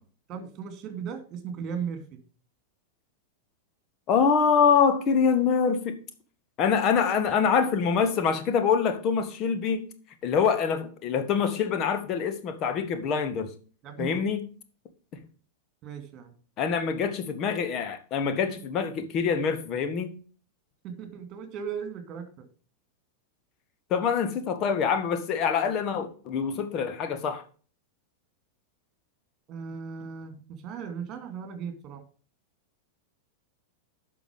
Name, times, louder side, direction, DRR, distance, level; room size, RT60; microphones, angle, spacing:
voice 1, 0.3-2.2 13.8-14.2 15.8-16.3 20.8-22.5 29.5-32.0, right 6 dB, 30° right, 2.6 m, -37 dB
voice 2, 4.1-6.0 6.6-9.9 10.2-13.5 14.0-14.5 15.1-15.2 16.6-20.1 23.9-27.4, left 6 dB, 35° left, 1.5 m, -25 dB
10.5 x 6.1 x 4.9 m
figure-of-eight pair, 90°, 0 cm